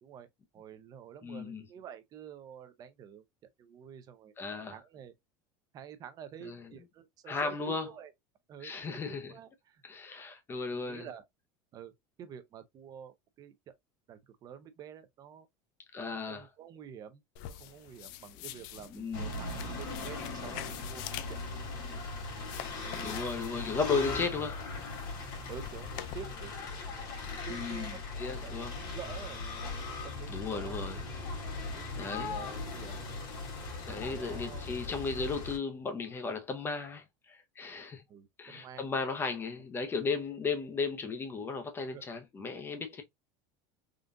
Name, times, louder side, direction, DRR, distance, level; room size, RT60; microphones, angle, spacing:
voice 1, 0.5-3.2 3.6-4.3 4.7-5.1 5.7-8.1 8.5-9.8 10.7-11.2 11.7-11.9 12.2-13.5 14.1-15.5 16.1-17.2 17.5-21.4 22.7-23.3 25.5-26.5 27.3-29.4 30.0-30.9 31.6-33.1 33.9-34.7 38.1-38.8 41.9-42.0, right 8 dB, 35° right, 0.6 m, -49 dB
voice 2, 1.2-1.6 4.4-4.8 6.4-6.7 7.3-7.9 8.6-9.3 9.8-11.1 15.9-16.5 18.9-19.3 23.0-24.7 27.5-28.8 30.3-31.0 32.0-32.3 33.9-38.0 38.4-43.0, left 4 dB, 20° left, 0.7 m, -35 dB
sound 1, 17.4-26.1, left 13 dB, 70° left, 0.4 m, -47 dB
sound 2, 19.1-35.6, left 3 dB, 45° left, 2.0 m, -39 dB
3.7 x 2.4 x 2.5 m
supercardioid pair, 135°, 11 cm